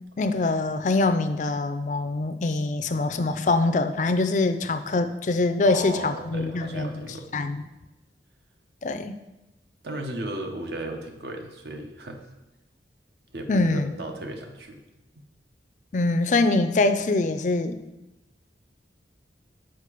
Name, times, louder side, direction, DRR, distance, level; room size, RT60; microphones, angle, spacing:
voice 1, 0.2-7.1 7.3-7.6 8.8-9.1 13.5-13.9 15.9-17.8, left 3 dB, 45° left, 9 dB, 0.4 m, -24 dB
voice 2, 5.6-7.3 9.8-12.2 13.3-14.8, right 2 dB, 70° right, 4 dB, 0.9 m, -35 dB
6.7 x 5.0 x 4.9 m, 0.99 s
head